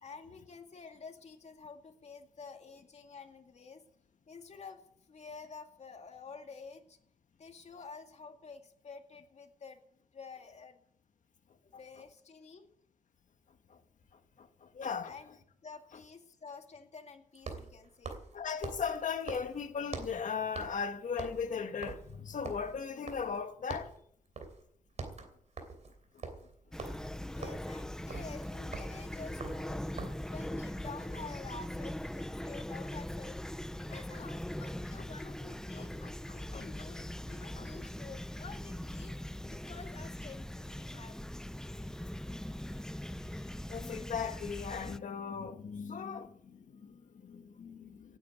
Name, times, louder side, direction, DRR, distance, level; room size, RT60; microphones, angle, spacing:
voice 1, 0.0-3.8 4.3-7.0 7.4-9.9 10.1-10.8 11.6-12.7 15.0-18.2 27.3-36.0 36.3-41.2, left 4 dB, 55° left, 2.3 m, -50 dB
sound 1, 14.0-14.1 17.3-20.3 20.5-20.9 21.1-23.4 23.7-24.0 24.4-24.6 24.9-30.3, right 4 dB, 60° right, 3.0 m, -44 dB
voice 2, 14.4-15.1 15.9-16.0 18.3-23.9 33.9-34.3 35.2-35.3 35.8-36.1 36.5-36.7 37.6-37.7 43.7-48.2, left 6 dB, 75° left, 1.6 m, -38 dB
Fowl / Chirp tweet, 26.7-45.0, left 1 dB, 5° left, 0.5 m, -41 dB
18.0 x 9.1 x 7.0 m
wide cardioid pair, 125°, 13 cm